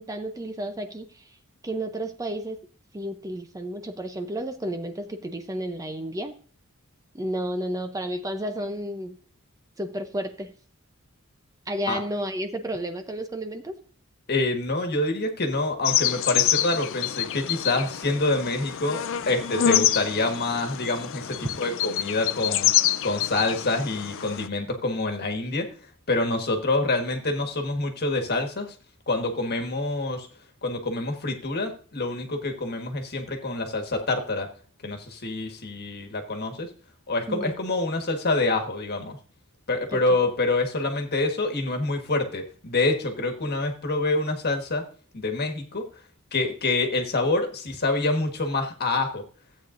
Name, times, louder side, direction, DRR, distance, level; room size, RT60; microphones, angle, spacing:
voice 1, 0.0-1.4 1.6-2.6 2.9-6.3 7.1-9.2 9.8-10.5 11.7-13.8 19.6-20.0 37.3-37.5 39.9-40.0, right 1 dB, 15° right, 7 dB, 0.6 m, -32 dB
voice 2, 14.3-25.7 26.1-28.7 29.1-30.3 30.6-34.5 34.8-36.7 37.1-39.2 39.7-44.8 45.1-45.9 46.3-49.2, left 2 dB, 50° left, 4 dB, 1.5 m, -26 dB
sound 1, 15.8-24.5, left 11 dB, 65° left, 0.5 m, -26 dB
15.0 x 8.5 x 2.6 m, 0.40 s
head